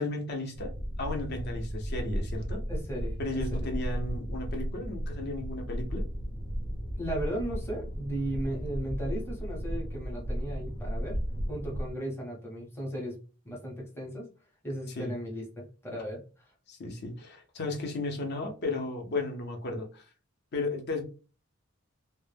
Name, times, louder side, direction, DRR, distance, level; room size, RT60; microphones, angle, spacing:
voice 1, 0.0-2.6 3.2-6.1 15.0-15.1 16.7-20.0 20.5-21.0, left 2 dB, 55° left, 0.6 m, -34 dB
sound 1, 0.5-11.9, equal, 85° left, 0.9 m, -34 dB
voice 2, 2.7-3.7 7.0-11.2 11.5-13.2 13.4-14.3 14.6-16.2, right 1 dB, 10° left, 0.7 m, -36 dB
2.1 x 2.0 x 3.2 m
head